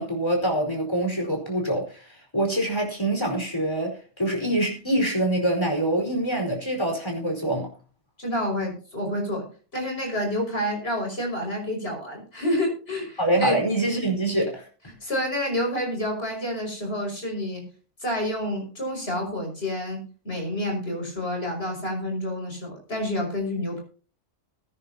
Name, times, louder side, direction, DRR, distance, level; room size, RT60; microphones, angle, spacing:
voice 1, 0.0-7.7 13.2-14.7, right 1 dB, 20° left, 4.8 m, -25 dB
voice 2, 8.2-9.4 9.7-13.6 15.0-17.6 18.0-23.8, left 1 dB, 55° left, 6.0 m, -29 dB
21.5 x 9.8 x 2.9 m
omnidirectional pair, 1.3 m